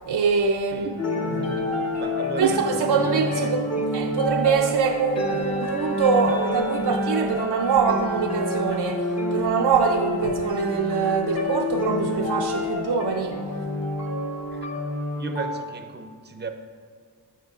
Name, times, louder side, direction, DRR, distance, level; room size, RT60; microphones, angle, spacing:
voice 1, 0.1-2.0 2.4-13.4, right 5 dB, 70° right, 0.6 m, -24 dB
voice 2, 0.7-1.0 2.0-3.1 3.3-3.6 14.5-14.7 15.2-16.5, right 3 dB, 25° right, 0.6 m, -36 dB
sound 1, 1.0-15.6, left 1 dB, 40° left, 1.2 m, -28 dB
14.0 x 6.1 x 2.4 m
wide cardioid pair, 100°, 41 cm